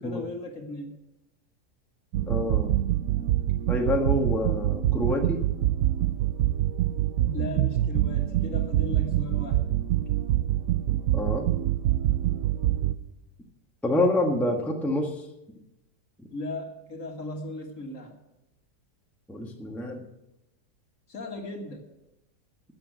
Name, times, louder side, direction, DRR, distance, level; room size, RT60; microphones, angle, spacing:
voice 1, 0.0-1.0 7.3-9.6 16.3-18.1 21.1-21.9, left 2 dB, 50° left, 3 dB, 2.2 m, -36 dB
sound 1, 2.1-12.9, right 13 dB, 65° right, 1.0 m, -25 dB
voice 2, 2.3-2.7 3.7-5.4 10.9-11.4 13.8-15.2 16.2-16.3 19.3-20.0, left 1 dB, ahead, 1 dB, 1.3 m, -27 dB
13.0 x 7.9 x 9.0 m, 0.91 s
omnidirectional pair, 1.7 m